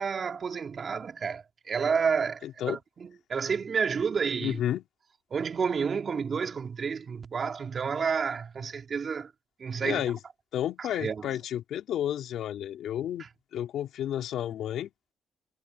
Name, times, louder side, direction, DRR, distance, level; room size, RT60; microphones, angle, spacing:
voice 1, 0.0-4.6 5.3-9.3 9.6-10.0 10.8-11.3 13.2-13.3, right 6 dB, 45° right, 3.3 m, -30 dB
voice 2, 2.4-2.8 4.4-4.8 9.8-10.2 10.5-13.2 13.5-14.9, left 11 dB, 75° left, 3.3 m, -31 dB
cardioid pair, 90°, 0 cm